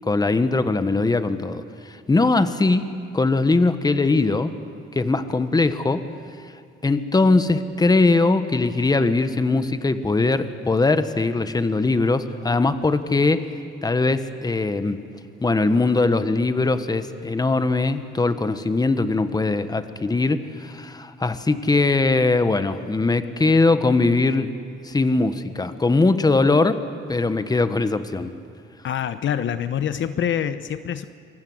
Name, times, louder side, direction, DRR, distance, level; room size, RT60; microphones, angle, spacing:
voice 1, 0.0-1.6 2.1-2.9 3.1-4.5 4.9-6.0 6.8-13.4 13.8-15.0 15.4-24.5 24.8-26.8 27.1-28.3, left 3 dB, 20° left, 11 dB, 1.3 m, -20 dB
voice 2, 28.8-31.0, left 9 dB, 65° left, 12 dB, 1.0 m, -25 dB
28.0 x 23.5 x 7.9 m, 2.4 s
cardioid pair, 105°, 21 cm